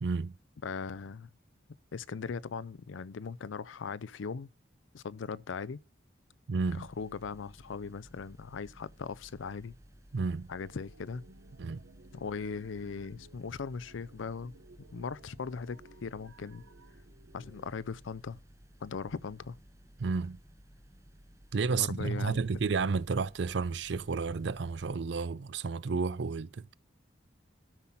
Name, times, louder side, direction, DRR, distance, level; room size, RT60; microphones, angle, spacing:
voice 1, 0.0-0.3 6.5-6.9 10.1-10.5 11.6-11.8 20.0-20.4 21.5-26.7, right 4 dB, 65° right, 0.5 m, -31 dB
voice 2, 0.6-1.3 1.9-4.5 4.9-5.8 6.7-9.7 10.5-11.2 12.1-14.5 14.9-16.6 17.3-18.4 18.8-19.6 21.7-22.4, left 5 dB, 85° left, 0.5 m, -39 dB
sound 1, 6.6-25.0, equal, 15° right, 0.8 m, -57 dB
sound 2, 10.5-17.6, right 3 dB, 85° right, 1.0 m, -59 dB
12.5 x 5.7 x 5.8 m
head